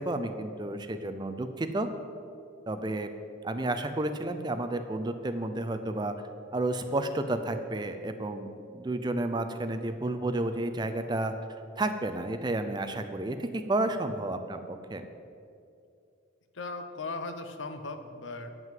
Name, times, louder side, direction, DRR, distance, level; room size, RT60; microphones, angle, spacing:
voice 1, 0.0-1.9 2.7-3.1 3.4-6.1 6.5-8.5 8.7-11.3 11.8-15.0, right 2 dB, 20° right, 8 dB, 0.4 m, -31 dB
voice 2, 16.5-18.5, left 3 dB, 70° left, 8 dB, 0.8 m, -38 dB
9.2 x 6.0 x 7.5 m, 2.5 s
head